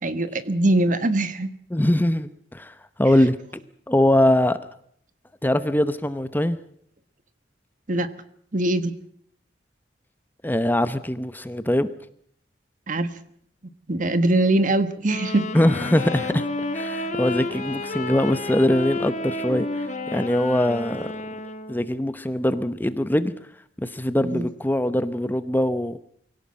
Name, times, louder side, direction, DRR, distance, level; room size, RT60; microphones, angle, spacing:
voice 1, 0.0-1.5 7.9-8.1 8.5-8.9 12.9-13.1 13.9-15.5 24.3-24.5, right 2 dB, 45° right, 12 dB, 1.4 m, -22 dB
voice 2, 1.7-3.3 3.9-4.6 5.4-6.6 10.4-11.9 15.5-16.5 16.7-19.7 20.1-21.4 21.7-23.3 23.8-26.0, left 1 dB, 10° left, 12 dB, 0.8 m, -22 dB
Wind instrument woodwind instrument, 15.0-21.9, left 2 dB, 45° left, 1.2 m, -31 dB
Wind instrument woodwind instrument 2, 15.5-20.4, right 1 dB, 30° right, 3.0 m, -40 dB
24.5 x 17.0 x 7.5 m, 0.65 s
head